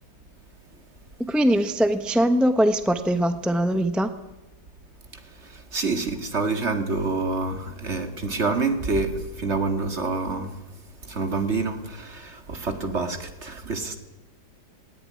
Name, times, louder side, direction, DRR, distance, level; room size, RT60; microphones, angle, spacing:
voice 1, 1.3-4.1, equal, ahead, 9 dB, 0.8 m, -21 dB
voice 2, 5.5-10.5 11.0-14.0, right 3 dB, 40° right, 7 dB, 2.3 m, -27 dB
19.0 x 18.5 x 9.8 m, 0.99 s
omnidirectional pair, 1.8 m